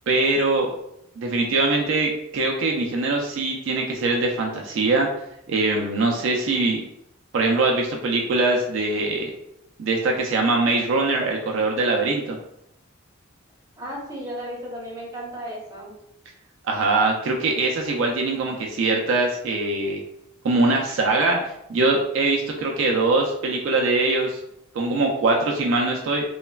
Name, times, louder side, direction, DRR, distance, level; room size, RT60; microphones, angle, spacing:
voice 1, 0.1-0.7 1.2-5.1 5.5-6.8 7.3-9.3 9.8-12.4 16.7-20.0 20.4-24.4 24.7-26.2, right 3 dB, 60° right, 0 dB, 0.3 m, -22 dB
voice 2, 13.8-15.9, equal, 15° right, -4 dB, 0.6 m, -34 dB
3.1 x 2.1 x 2.2 m, 0.81 s
head